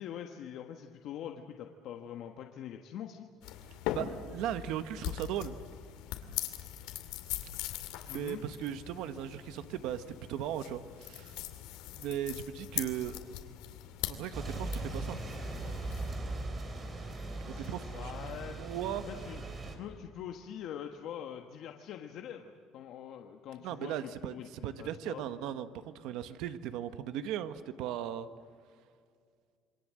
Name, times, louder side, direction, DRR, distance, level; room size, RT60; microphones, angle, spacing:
voice 1, 0.0-3.3 8.1-8.4 17.5-18.6 19.0-25.2, left 9 dB, 55° left, 3 dB, 1.4 m, -44 dB
sound 1, 3.4-16.1, left 12 dB, 85° left, 2.5 m, -41 dB
voice 2, 3.9-5.6 8.0-11.4 12.0-13.2 14.0-15.2 17.5-17.8 18.6-19.0 23.6-24.3 24.6-28.3, right 10 dB, 70° right, 10 dB, 1.3 m, -37 dB
sound 2, 14.3-19.8, right 2 dB, 20° right, 3.4 m, -39 dB
27.5 x 23.5 x 7.7 m, 2.2 s
cardioid pair, 160°, 0 cm